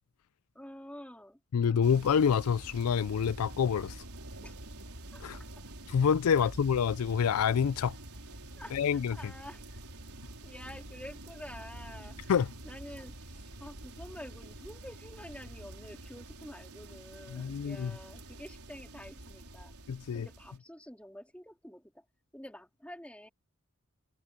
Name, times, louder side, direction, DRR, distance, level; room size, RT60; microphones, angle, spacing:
voice 1, 0.6-1.4 4.4-4.6 5.1-5.6 6.4-6.5 8.6-9.8 10.4-19.7 20.1-22.1 22.3-23.3, left 1 dB, 5° left, 3.5 m, -48 dB
voice 2, 1.5-4.0 5.2-5.4 5.9-8.0 8.7-9.2 12.3-12.5 17.3-17.9 19.9-20.3, left 7 dB, 80° left, 0.4 m, -27 dB
sound 1, 1.8-20.6, right 1 dB, 85° right, 4.5 m, -47 dB
head